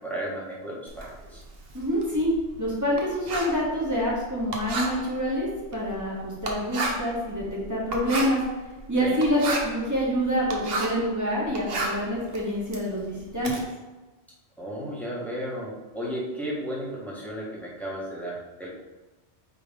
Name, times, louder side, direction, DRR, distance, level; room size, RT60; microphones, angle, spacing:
voice 1, 0.0-1.4 9.0-9.2 14.6-18.7, equal, ahead, -5 dB, 1.5 m, -34 dB
Writing, 0.9-11.1 11.4-13.6, right 2 dB, 60° right, 1.1 m, -33 dB
voice 2, 1.7-2.3 2.6-8.4 8.9-13.5, equal, 15° right, -6 dB, 1.6 m, -26 dB
8.8 x 3.4 x 3.7 m, 1.2 s
omnidirectional pair, 1.2 m